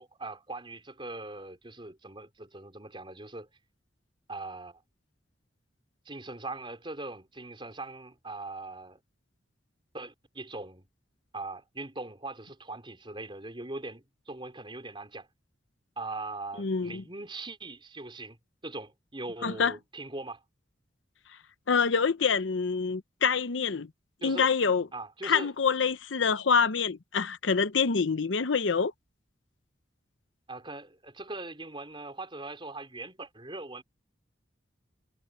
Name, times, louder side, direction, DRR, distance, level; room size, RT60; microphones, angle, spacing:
voice 1, 0.0-3.5 4.3-4.8 6.1-9.0 9.9-10.9 11.3-15.3 16.0-18.4 18.6-20.4 24.2-24.5 24.9-25.5 30.5-33.8, right 2 dB, 25° right, 4.3 m, -41 dB
voice 2, 16.6-17.0 19.4-19.7 21.7-23.9 24.2-24.9 25.2-28.9, left 5 dB, 80° left, 0.7 m, -26 dB
head